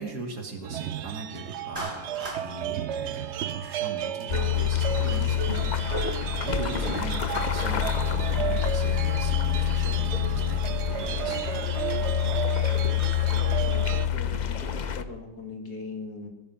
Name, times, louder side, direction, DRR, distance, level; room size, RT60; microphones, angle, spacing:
voice 1, 0.0-5.7 6.4-11.8 12.2-12.4, right 3 dB, 90° right, 3 dB, 2.7 m, -39 dB
sound 1, 0.6-14.1, right 10 dB, 60° right, 0.8 m, -33 dB
Clapping, 1.8-2.4, right 1 dB, 30° right, 3.6 m, -36 dB
sound 2, 4.3-15.0, left 10 dB, 50° left, 0.5 m, -27 dB
voice 2, 13.3-16.3, left 3 dB, 75° left, 2 dB, 3.0 m, -40 dB
17.5 x 13.0 x 5.7 m, 0.94 s
omnidirectional pair, 1.7 m